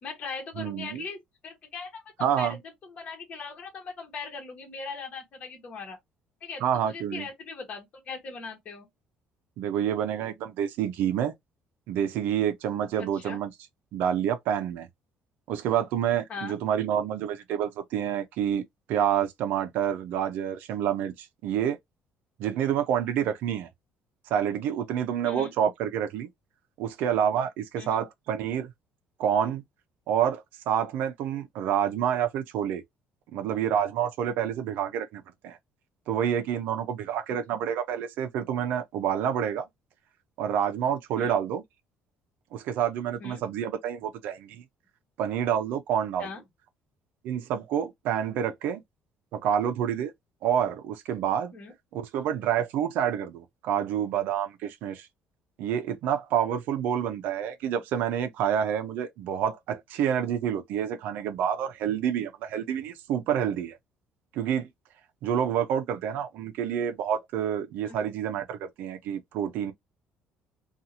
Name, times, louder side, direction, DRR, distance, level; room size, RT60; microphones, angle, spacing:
voice 1, 0.0-2.6 2.8-6.0 6.4-8.9 13.0-13.4 16.3-16.6 25.2-25.5 27.8-28.0 41.2-41.4 43.2-43.4 46.2-46.4 51.5-51.7 67.8-68.1, left 4 dB, 45° left, 1.0 m, -40 dB
voice 2, 0.6-1.0 2.2-2.6 6.6-7.3 9.6-11.3 11.9-13.5 13.9-14.9 15.5-18.6 18.9-21.8 22.4-23.7 24.3-26.3 26.8-28.7 29.2-29.6 30.1-32.8 33.3-35.6 36.1-39.7 40.4-41.6 42.5-44.6 45.2-46.3 47.2-48.8 49.3-50.1 50.4-51.5 51.9-55.1 55.6-63.8 64.3-64.7 65.2-69.7, right 9 dB, 75° right, 0.5 m, -28 dB
2.6 x 2.4 x 2.8 m
cardioid pair, 125°, 3 cm